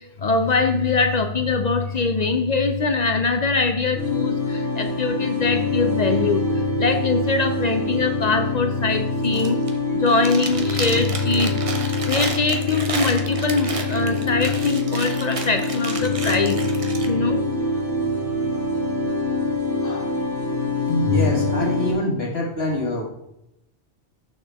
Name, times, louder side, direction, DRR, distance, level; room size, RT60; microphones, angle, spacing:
voice 1, 0.2-6.4 6.8-9.6 10.0-11.5 12.1-16.6 17.1-17.4 19.8-20.1, left 3 dB, 50° left, 7 dB, 0.5 m, -22 dB
sound 1, 4.0-21.9, left 2 dB, 15° left, 2.1 m, -25 dB
Chewing mastication, 9.2-9.8 10.1-17.1, right 3 dB, 35° right, 0.8 m, -32 dB
voice 2, 20.9-23.0, left 1 dB, 65° left, -3 dB, 2.2 m, -23 dB
6.6 x 6.3 x 3.4 m, 0.83 s
omnidirectional pair, 1.1 m